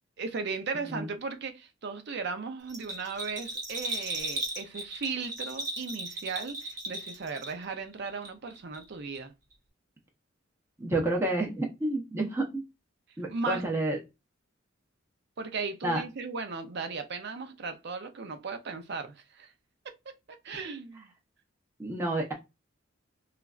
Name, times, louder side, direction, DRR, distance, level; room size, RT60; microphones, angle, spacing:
voice 1, 0.2-9.3 13.3-13.6 15.4-19.5 19.8-19.9 20.4-21.1, right 4 dB, 55° right, 0.5 m, -36 dB
Bell, 2.7-7.8 8.1-8.8 9.1-9.2, right 2 dB, 40° right, 0.9 m, -36 dB
voice 2, 10.8-12.6 13.2-14.0 15.8-16.0 21.8-22.3, right 2 dB, 15° right, 0.6 m, -29 dB
3.1 x 2.4 x 2.3 m
head